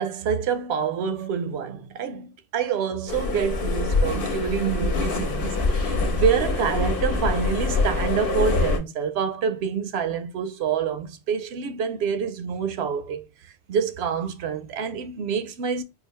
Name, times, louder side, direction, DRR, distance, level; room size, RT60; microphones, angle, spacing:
voice 1, 0.0-15.8, right 7 dB, 70° right, 0.8 m, -27 dB
sound 1, 3.1-8.8, left 3 dB, 60° left, 1.0 m, -24 dB
4.0 x 2.5 x 3.0 m
omnidirectional pair, 1.1 m